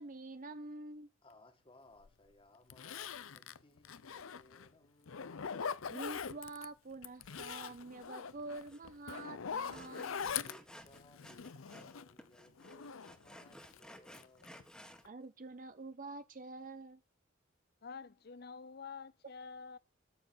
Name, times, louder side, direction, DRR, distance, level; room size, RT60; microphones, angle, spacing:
voice 1, 0.0-1.1 5.9-10.3 15.0-17.0, right 3 dB, 40° right, 0.6 m, -47 dB
voice 2, 1.2-5.5 10.4-14.7, left 1 dB, 25° left, 2.0 m, -63 dB
Zipper (clothing), 2.0-2.1 2.7-4.7 5.1-6.7 7.0-12.2 12.6-13.8 14.1-14.6 14.9-15.1, left 7 dB, 90° left, 0.6 m, -43 dB
Sawing, 8.7-8.8 9.1-9.3 9.7-11.9 12.2-15.0, equal, 5° left, 1.6 m, -55 dB
voice 3, 17.8-19.8, left 5 dB, 50° left, 0.6 m, -48 dB
14.0 x 7.0 x 7.9 m
head